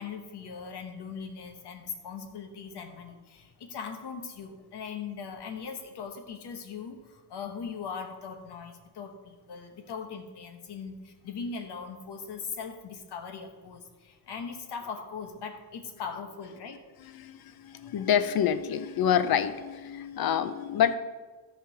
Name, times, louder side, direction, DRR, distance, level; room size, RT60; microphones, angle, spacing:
voice 1, 0.0-16.8 17.8-18.1, left 5 dB, 85° left, 5 dB, 1.3 m, -40 dB
voice 2, 17.0-21.0, left 9 dB, 65° left, 12 dB, 0.7 m, -27 dB
13.0 x 5.0 x 4.9 m, 1.3 s
wide cardioid pair, 135°, 39 cm